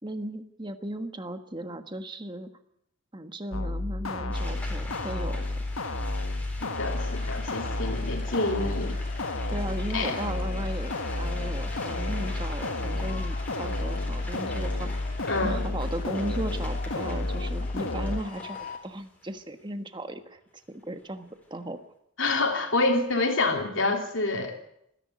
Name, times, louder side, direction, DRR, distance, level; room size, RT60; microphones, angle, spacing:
voice 1, 0.0-2.5 3.1-5.6 9.5-14.9 15.4-20.4 20.7-21.8, right 1 dB, 20° right, 8 dB, 1.3 m, -36 dB
sound 1, 3.5-18.2, left 2 dB, 80° left, 1.3 m, -31 dB
sound 2, 4.3-19.4 20.1-20.2 20.4-21.8, left 1 dB, 5° left, 4.0 m, -45 dB
voice 2, 6.6-9.0 9.9-10.2 15.2-15.6 22.2-24.6, left 2 dB, 65° left, 2 dB, 3.0 m, -27 dB
sound 3, 6.8-18.8, left 4 dB, 40° left, 2.2 m, -44 dB
25.5 x 10.5 x 9.5 m, 0.76 s
head